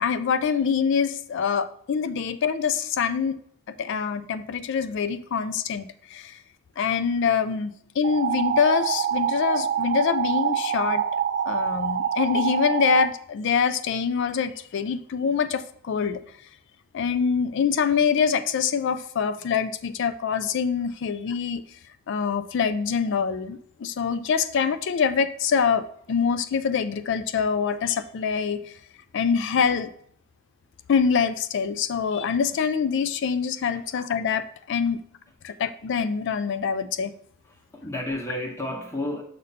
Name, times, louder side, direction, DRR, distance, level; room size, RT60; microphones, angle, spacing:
voice 1, 0.0-3.4 3.7-6.4 6.8-11.0 11.5-16.2 16.9-21.6 22.1-28.8 29.1-29.9 30.9-35.0 35.4-37.1, left 6 dB, 60° left, 12 dB, 0.4 m, -25 dB
sound 1, 8.0-13.1, right 8 dB, 50° right, 0.5 m, -25 dB
voice 2, 37.4-39.2, left 1 dB, 15° left, 2 dB, 0.9 m, -31 dB
6.6 x 5.4 x 4.1 m, 0.66 s
head